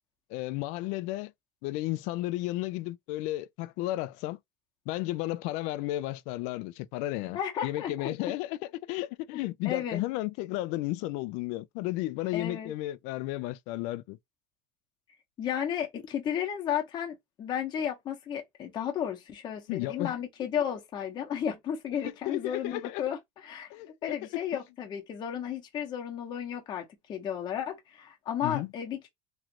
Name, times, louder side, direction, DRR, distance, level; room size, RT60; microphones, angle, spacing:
voice 1, 0.3-1.3 1.6-4.4 4.9-14.2 19.7-20.1 22.0-23.0 23.7-24.2 28.4-28.7, left 17 dB, 60° left, 0.4 m, -33 dB
voice 2, 7.3-8.1 9.6-10.0 12.3-12.7 15.4-23.7 24.0-29.1, left 9 dB, 30° left, 0.9 m, -33 dB
3.1 x 2.5 x 2.9 m
cardioid pair, 155°, 14 cm